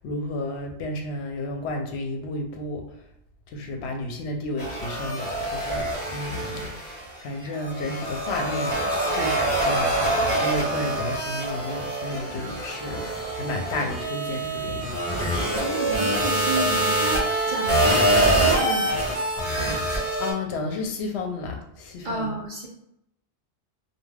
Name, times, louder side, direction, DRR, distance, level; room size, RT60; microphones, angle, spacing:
voice 1, 0.0-2.8 3.5-14.9 20.2-22.3, left 2 dB, 75° left, 2 dB, 0.8 m, -32 dB
sound 1, 4.6-7.2 7.5-20.3, right 1 dB, 30° right, 0.9 m, -25 dB
voice 2, 15.6-19.2 22.0-22.7, right 3 dB, 60° right, -2 dB, 0.5 m, -31 dB
2.2 x 2.2 x 3.2 m, 0.79 s
omnidirectional pair, 1.2 m